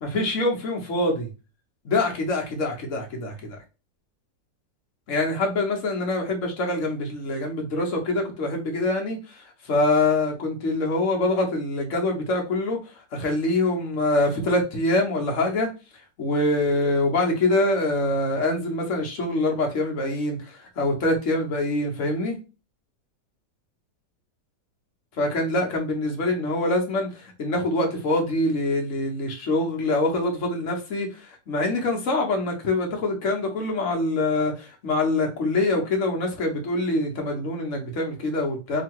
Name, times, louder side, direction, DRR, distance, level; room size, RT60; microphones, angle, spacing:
voice 1, 0.0-1.3 1.8-3.6 5.1-15.7 16.2-22.4 25.2-38.8, left 2 dB, 50° left, 1.1 m, -25 dB
3.0 x 2.8 x 4.5 m
omnidirectional pair, 2.0 m